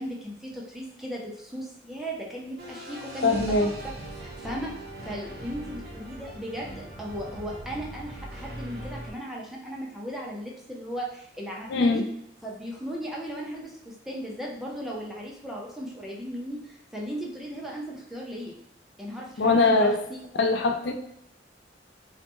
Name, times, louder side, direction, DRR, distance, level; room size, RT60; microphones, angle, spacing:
voice 1, 0.0-4.7 5.0-12.0 12.4-18.6 19.0-20.3, equal, ahead, -3 dB, 0.4 m, -36 dB
sound 1, 2.6-9.1, right 1 dB, 60° right, 0.6 m, -40 dB
voice 2, 3.2-3.7 11.7-12.0 19.4-20.0 20.4-20.9, left 3 dB, 75° left, 5 dB, 0.4 m, -21 dB
3.1 x 2.1 x 2.9 m, 0.74 s
head